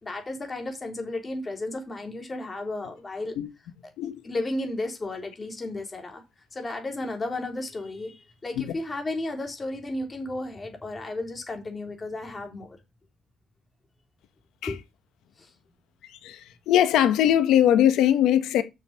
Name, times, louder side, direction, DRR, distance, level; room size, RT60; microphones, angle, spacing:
voice 1, 0.0-3.4 4.2-6.2 6.5-12.8 14.7-14.8 15.4-15.5, left 2 dB, 30° left, 3.3 m, -33 dB
voice 2, 16.7-18.6, left 11 dB, 85° left, 1.2 m, -20 dB
6.8 x 6.6 x 5.7 m
cardioid pair, 90°, 0 cm